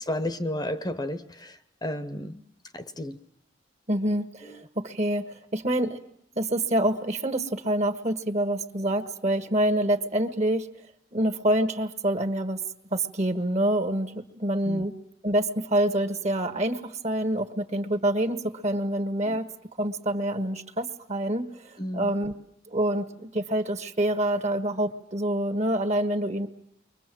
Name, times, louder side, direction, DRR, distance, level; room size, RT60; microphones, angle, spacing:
voice 1, 0.1-2.4 2.7-3.2 4.4-4.6 14.6-14.9 19.2-19.4 21.8-22.1, left 1 dB, 20° left, 12 dB, 1.0 m, -32 dB
voice 2, 3.9-6.0 6.3-10.7 11.1-12.6 12.9-14.9 15.2-19.5 19.8-22.3 22.7-26.5, right 1 dB, 35° right, 8 dB, 1.5 m, -26 dB
30.0 x 23.5 x 7.7 m, 0.71 s
head